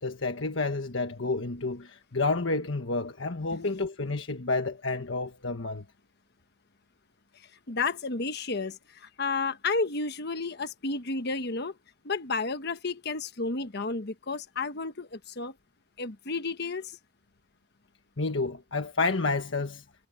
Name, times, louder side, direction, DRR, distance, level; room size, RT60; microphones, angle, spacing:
voice 1, 0.0-5.8 18.2-19.8, left 3 dB, 75° left, 1.4 m, -30 dB
voice 2, 7.7-11.7 12.0-15.5 16.0-17.0, left 3 dB, 55° left, 1.3 m, -32 dB
head